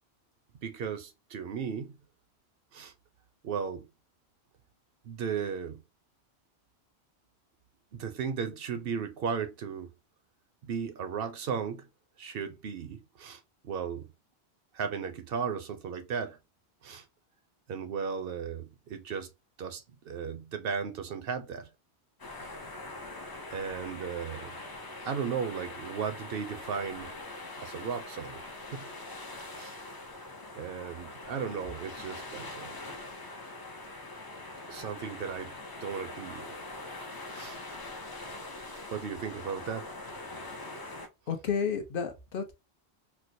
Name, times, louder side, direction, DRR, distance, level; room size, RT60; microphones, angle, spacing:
voice 1, 0.6-2.0 2.7-2.9 3.4-3.9 5.0-5.8 7.9-9.9 10.7-11.9 12.2-14.1 14.7-16.4 16.8-17.0 17.7-19.3 19.6-21.7 22.4-22.5 23.5-24.5 25.0-27.1 27.6-28.4 28.7-28.9 29.6-29.8 30.5-32.7 34.7-35.5 35.8-36.6 37.3-37.6 38.9-39.9, right 6 dB, 65° right, 0.7 m, -35 dB
sound 1, 22.2-41.1, left 2 dB, 35° left, 0.4 m, -43 dB
voice 2, 41.3-42.5, left 6 dB, 60° left, 0.8 m, -31 dB
4.4 x 2.0 x 2.6 m
omnidirectional pair, 1.1 m